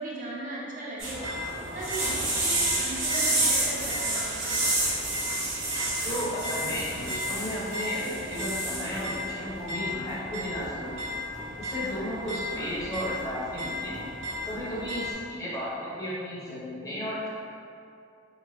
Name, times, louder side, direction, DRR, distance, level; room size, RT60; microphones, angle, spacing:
voice 1, 0.0-1.3 1.7-4.6 12.5-12.7, right 1 dB, 40° right, -5 dB, 0.5 m, -37 dB
sound 1, 1.0-15.1, right 1 dB, 65° right, 1.0 m, -30 dB
voice 2, 6.0-11.1 11.6-14.0 14.5-17.3, equal, 15° left, -7 dB, 0.7 m, -34 dB
3.6 x 3.0 x 2.4 m, 2.4 s
head